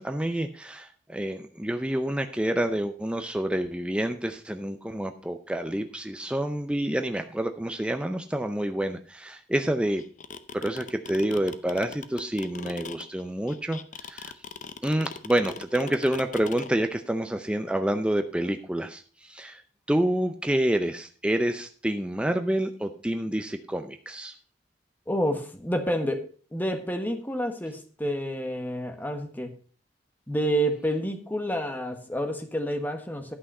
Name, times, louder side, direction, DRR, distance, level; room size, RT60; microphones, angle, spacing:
voice 1, 0.0-10.0 10.5-14.3 14.8-19.6 19.9-24.3, right 1 dB, 5° right, 6 dB, 0.6 m, -28 dB
sound 1, 10.0-16.7, left 5 dB, 45° left, 0.7 m, -39 dB
voice 2, 25.1-26.2 26.5-29.5 30.3-33.3, equal, 10° left, 6 dB, 1.3 m, -29 dB
11.5 x 6.2 x 5.4 m, 0.40 s
head